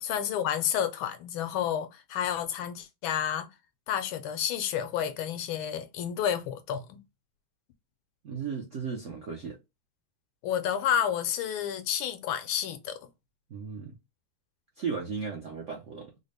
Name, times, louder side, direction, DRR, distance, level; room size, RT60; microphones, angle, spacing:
voice 1, 0.0-3.5 3.9-7.0 10.4-13.0, left 9 dB, 80° left, 1.4 m, -30 dB
voice 2, 8.2-9.6 13.5-14.0 14.8-16.1, right 5 dB, 70° right, 0.7 m, -35 dB
3.9 x 2.1 x 3.2 m
omnidirectional pair, 2.2 m